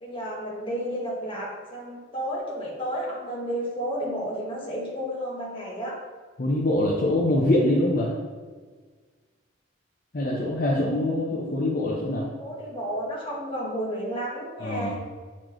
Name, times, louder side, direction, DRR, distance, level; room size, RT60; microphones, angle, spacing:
voice 1, 0.0-6.0 10.7-11.1 12.4-15.0, equal, 25° left, -4 dB, 1.5 m, -32 dB
voice 2, 6.4-8.1 10.1-12.3 14.6-14.9, left 1 dB, 45° left, -3 dB, 0.7 m, -24 dB
8.7 x 4.3 x 3.1 m, 1.5 s
head